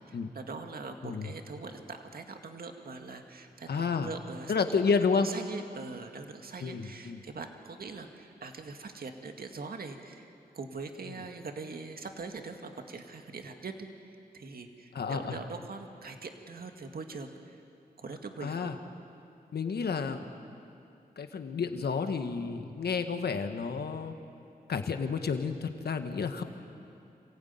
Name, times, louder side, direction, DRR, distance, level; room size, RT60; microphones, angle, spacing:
voice 1, 0.1-4.5 5.0-17.6 18.0-18.7, right 4 dB, 65° right, 4 dB, 2.0 m, -42 dB
voice 2, 3.7-4.1 4.5-5.3 6.6-7.2 14.9-15.4 18.4-18.7 19.5-20.2 21.2-24.1 24.7-26.4, left 5 dB, 75° left, 7 dB, 1.6 m, -30 dB
27.0 x 16.0 x 9.5 m, 2.6 s
cardioid pair, 55°, 17 cm